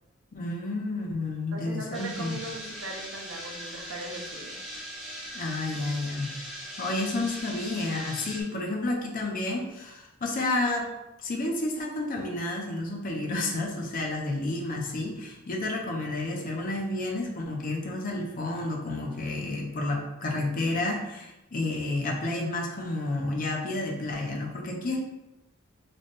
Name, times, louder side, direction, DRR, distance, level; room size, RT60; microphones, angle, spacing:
voice 1, 0.3-2.4 5.3-6.3 6.8-10.9 11.2-25.0, left 2 dB, 40° left, 1 dB, 0.5 m, -30 dB
voice 2, 1.5-4.6, right 2 dB, 65° right, 1 dB, 0.7 m, -39 dB
sound 1, 1.9-8.4, equal, ahead, 0.8 m, -40 dB
3.3 x 2.2 x 3.9 m, 0.94 s
head